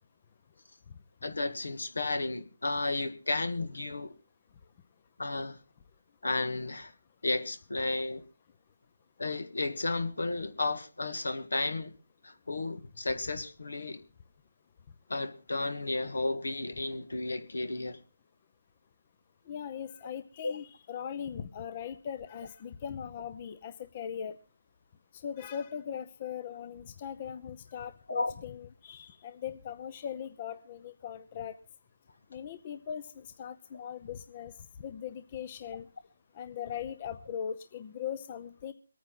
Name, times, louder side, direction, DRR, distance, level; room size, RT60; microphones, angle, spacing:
voice 1, 1.2-4.2 5.2-5.6 6.2-6.9 7.2-8.2 9.2-11.9 12.2-14.0 15.1-18.0 20.4-20.5 28.1-28.3, left 2 dB, 75° left, 11 dB, 1.7 m, -33 dB
voice 2, 19.5-24.3 25.2-31.6 32.3-34.5 34.8-35.9 36.3-38.7, left 8 dB, 30° left, 11 dB, 0.7 m, -40 dB
22.5 x 9.4 x 3.9 m, 0.33 s
figure-of-eight pair, 160°, 0 cm